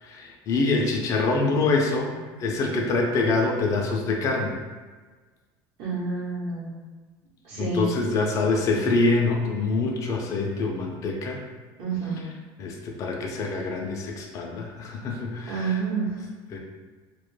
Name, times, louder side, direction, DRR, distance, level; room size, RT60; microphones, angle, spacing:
voice 1, 0.0-4.6 7.6-11.4 12.6-15.8 16.5-16.6, left 3 dB, 35° left, 0 dB, 0.3 m, -25 dB
voice 2, 5.8-6.7 7.4-7.9 11.8-12.2 15.5-16.1, right 4 dB, 65° right, -5 dB, 0.9 m, -28 dB
2.1 x 2.1 x 3.1 m, 1.4 s
cardioid pair, 145°, 9 cm